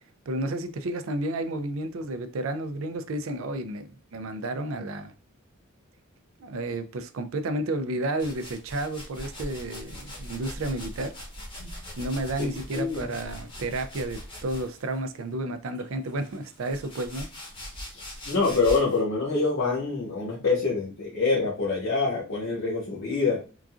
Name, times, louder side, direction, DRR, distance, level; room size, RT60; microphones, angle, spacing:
voice 1, 0.3-5.1 6.4-11.2 12.0-17.3, right 2 dB, 65° right, 0.4 m, -31 dB
sound 1, 8.2-15.0 15.7-19.0, equal, 25° left, 0.9 m, -41 dB
voice 2, 12.4-13.1 17.9-23.4, left 4 dB, 75° left, 1.3 m, -26 dB
3.8 x 2.4 x 2.4 m
head